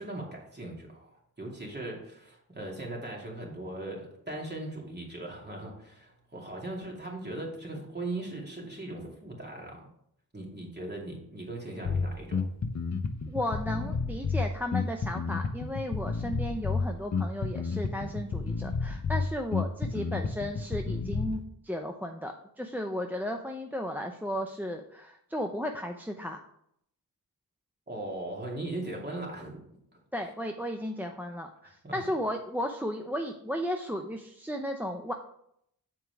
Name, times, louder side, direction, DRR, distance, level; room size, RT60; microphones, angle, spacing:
voice 1, 0.0-9.9 10.3-12.4 27.9-29.6 31.6-32.0, right 2 dB, 25° right, -2 dB, 2.7 m, -39 dB
Bass guitar, 11.8-21.4, left 4 dB, 45° left, 0.8 m, -31 dB
voice 2, 13.3-26.4 30.1-35.1, equal, 5° right, 3 dB, 0.6 m, -34 dB
7.4 x 4.7 x 4.7 m, 0.73 s
cardioid pair, 50°, 38 cm